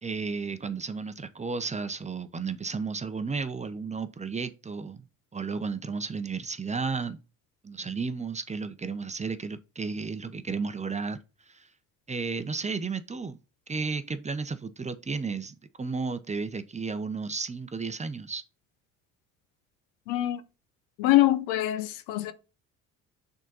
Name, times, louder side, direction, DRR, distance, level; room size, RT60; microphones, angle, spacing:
voice 1, 0.0-5.0 5.3-7.2 7.6-11.2 11.5-11.7 12.1-13.4 13.7-18.4, right 4 dB, 20° right, 0.7 m, -33 dB
voice 2, 20.1-20.4 21.0-22.3, left 15 dB, 80° left, 0.8 m, -24 dB
6.2 x 3.9 x 4.0 m
supercardioid pair, 70°, 37 cm